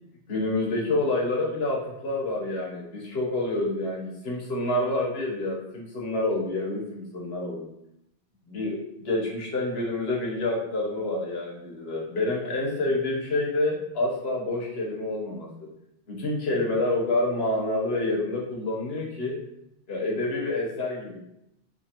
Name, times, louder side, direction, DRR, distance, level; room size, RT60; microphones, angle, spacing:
voice 1, 0.3-7.7 8.5-15.5 16.1-19.4 19.9-21.2, left 2 dB, 80° left, -2 dB, 1.2 m, -28 dB
3.5 x 2.7 x 2.8 m, 0.81 s
omnidirectional pair, 1.0 m